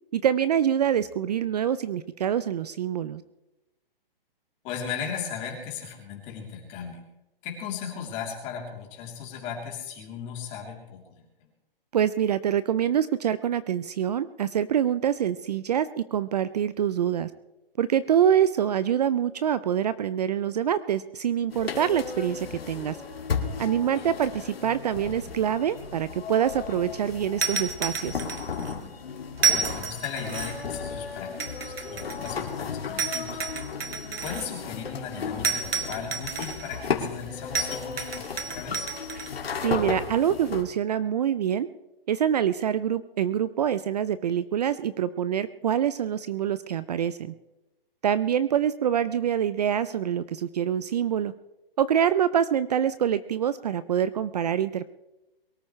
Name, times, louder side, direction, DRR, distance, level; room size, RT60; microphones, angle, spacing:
voice 1, 0.1-3.2 11.9-17.3 17.8-23.0 23.6-28.2 39.6-41.7 42.1-47.3 48.0-51.3 51.8-54.8, right 9 dB, 45° right, 16 dB, 0.5 m, -25 dB
voice 2, 4.6-7.0 7.4-11.2 24.0-24.1 29.5-33.4 34.2-38.9, left 7 dB, 25° left, 0 dB, 3.3 m, -37 dB
sound 1, 21.5-40.6, left 5 dB, 90° left, 2.4 m, -35 dB
sound 2, 27.4-28.7 29.4-30.7 31.4-32.5 33.0-34.5 35.4-36.8 37.5-39.3, right 5 dB, 85° right, 2.0 m, -30 dB
23.0 x 13.5 x 3.2 m, 0.97 s
hypercardioid pair, 160°, 29 cm